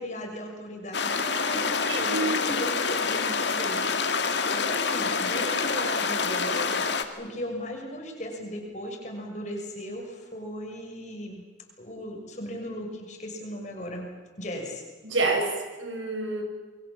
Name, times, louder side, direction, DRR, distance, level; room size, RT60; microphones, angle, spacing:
voice 1, 0.0-6.8 7.2-11.4 11.8-14.1 14.4-14.8, equal, 40° left, 1 dB, 6.5 m, -37 dB
sound 1, 0.9-7.0, left 5 dB, 65° left, 2.2 m, -27 dB
voice 2, 1.9-2.6 15.0-15.5 15.8-16.4, right 2 dB, 80° right, 4 dB, 6.2 m, -28 dB
28.0 x 23.5 x 7.5 m, 1.4 s
head